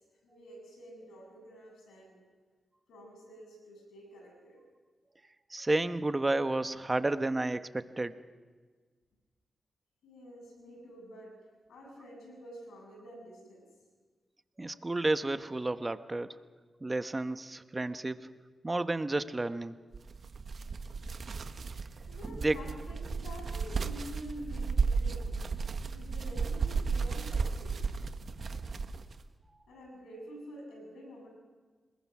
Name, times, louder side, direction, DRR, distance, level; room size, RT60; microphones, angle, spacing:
voice 1, 0.2-2.2 2.9-4.6 10.0-13.7 22.1-25.3 25.9-27.9 29.7-31.3, equal, 90° left, 1 dB, 7.6 m, -48 dB
voice 2, 5.5-8.1 14.6-16.3 16.8-18.3 18.6-19.7 22.4-22.6, right 2 dB, 30° right, 10 dB, 1.2 m, -31 dB
sound 1, 19.9-29.2, right 4 dB, 65° right, 1.4 m, -34 dB
26.0 x 21.5 x 6.2 m, 1.4 s
supercardioid pair, 40°, 0 cm